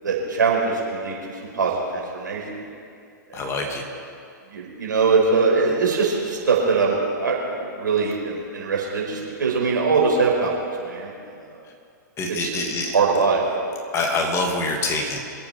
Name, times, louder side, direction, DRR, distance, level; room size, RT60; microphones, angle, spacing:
voice 1, 0.0-2.6 3.3-3.4 4.5-10.5 10.8-11.1 11.4-11.6 12.3-12.6 12.9-13.4, right 4 dB, 80° right, -2 dB, 5.1 m, -22 dB
voice 2, 3.3-3.8 12.2-12.9 13.9-15.2, left 2 dB, 25° left, 1 dB, 2.6 m, -25 dB
26.5 x 8.8 x 5.9 m, 2.5 s
hypercardioid pair, 110°, 10 cm